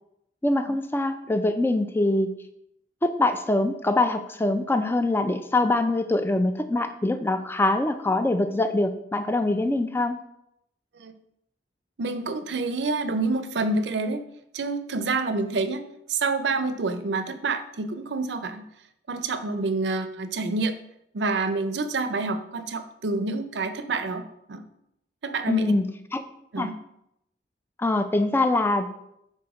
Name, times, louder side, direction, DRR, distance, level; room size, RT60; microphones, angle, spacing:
voice 1, 0.4-2.3 3.0-10.2 25.5-25.8 26.1-26.2 26.6-26.7 27.8-28.9, left 2 dB, 10° left, 8 dB, 0.4 m, -23 dB
voice 2, 12.0-14.2 14.5-15.8 16.1-18.7 19.1-20.8 21.1-24.6 25.2-25.7 26.5-26.8, right 3 dB, 70° right, 10 dB, 0.5 m, -27 dB
6.1 x 3.8 x 4.8 m, 0.79 s
head